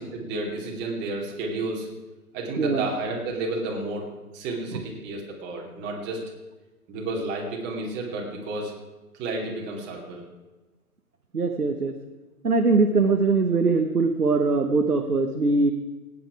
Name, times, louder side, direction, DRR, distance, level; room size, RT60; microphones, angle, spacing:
voice 1, 0.0-1.9 2.3-4.1 4.3-6.2 6.9-8.7 9.2-10.2, right 2 dB, 25° right, -1 dB, 2.7 m, -31 dB
voice 2, 11.3-11.9 12.4-15.7, right 3 dB, 85° right, 4 dB, 1.1 m, -22 dB
17.5 x 9.2 x 4.8 m, 1.2 s
figure-of-eight pair, 120°, 44 cm